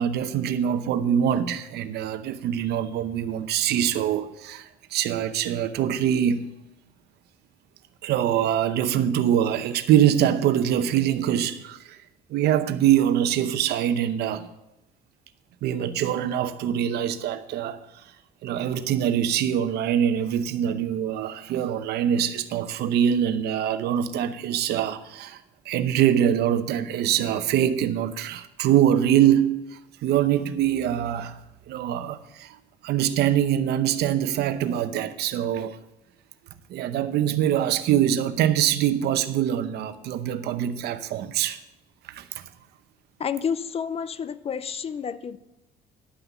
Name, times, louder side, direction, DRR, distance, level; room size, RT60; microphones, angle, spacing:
voice 1, 0.0-6.5 8.0-12.0 12.3-14.5 15.6-18.0 18.4-31.4 31.7-32.6 32.8-35.8 36.7-41.6 42.1-42.5, right 10 dB, 75° right, 0.8 m, -24 dB
voice 2, 43.2-45.4, left 7 dB, 35° left, 0.6 m, -30 dB
11.0 x 5.8 x 6.9 m
cardioid pair, 110°, 17 cm